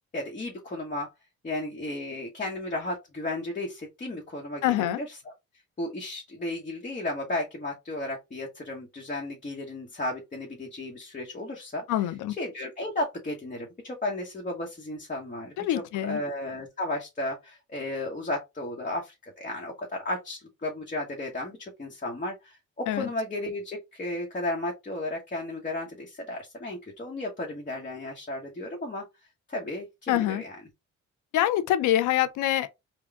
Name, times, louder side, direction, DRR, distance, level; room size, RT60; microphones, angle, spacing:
voice 1, 0.1-1.1 1.4-5.3 5.8-11.8 12.4-15.5 16.1-29.0 29.5-30.6, left 1 dB, 25° left, 1.1 m, -34 dB
voice 2, 4.6-5.0 11.9-12.3 15.6-16.2 22.9-23.1 30.1-30.4 31.3-32.7, left 13 dB, 85° left, 0.6 m, -25 dB
3.8 x 2.3 x 3.4 m
cardioid pair, 90°, 30 cm